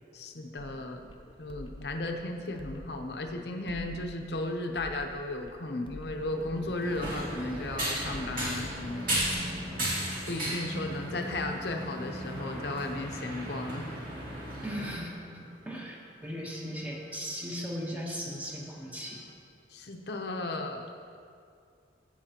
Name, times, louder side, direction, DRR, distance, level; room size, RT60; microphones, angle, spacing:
voice 1, 0.1-1.0 1.4-9.2 9.7-9.8 10.3-13.9 19.7-20.8, left 2 dB, 60° left, 4 dB, 0.8 m, -35 dB
sound 1, 0.6-9.6, left 1 dB, 25° left, 0.5 m, -47 dB
sound 2, 6.1-19.3, equal, 85° right, 1.0 m, -47 dB
sound 3, 6.8-14.9, right 1 dB, 50° right, 2.5 m, -35 dB
voice 2, 9.3-9.8 14.6-19.2, equal, 10° right, -2 dB, 1.1 m, -38 dB
13.0 x 8.1 x 2.9 m, 2.4 s
head